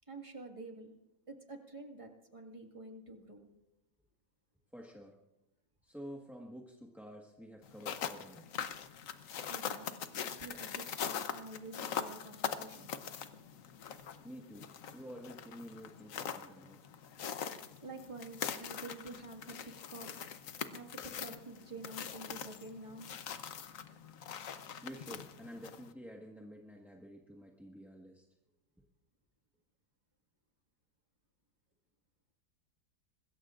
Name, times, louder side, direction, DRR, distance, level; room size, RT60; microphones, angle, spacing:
voice 1, 0.1-0.9 1.3-3.5 9.4-12.9 17.8-20.1 20.7-23.1, right 2 dB, 15° right, 2 dB, 1.7 m, -49 dB
voice 2, 4.7-5.2 5.8-8.5 14.2-16.8 23.6-28.2, equal, ahead, -1 dB, 1.1 m, -50 dB
sound 1, 7.6-25.9, left 8 dB, 55° left, 1.0 m, -42 dB
25.5 x 21.0 x 2.5 m, 0.91 s
omnidirectional pair, 2.1 m